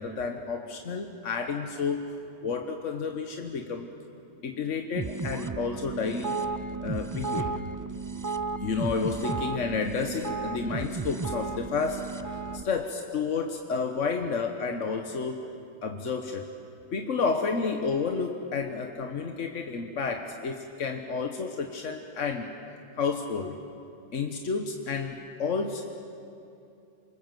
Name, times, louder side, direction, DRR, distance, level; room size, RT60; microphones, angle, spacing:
voice 1, 0.0-2.1 2.4-3.9 4.4-6.4 6.8-7.7 8.6-12.3 12.6-15.4 15.8-16.5 16.9-22.5 23.0-23.6 24.1-25.8, left 5 dB, 85° left, 4 dB, 1.6 m, -31 dB
sound 1, 5.0-12.6, right 4 dB, 25° right, 0.4 m, -34 dB
28.0 x 25.5 x 7.7 m, 2.7 s
omnidirectional pair, 1.3 m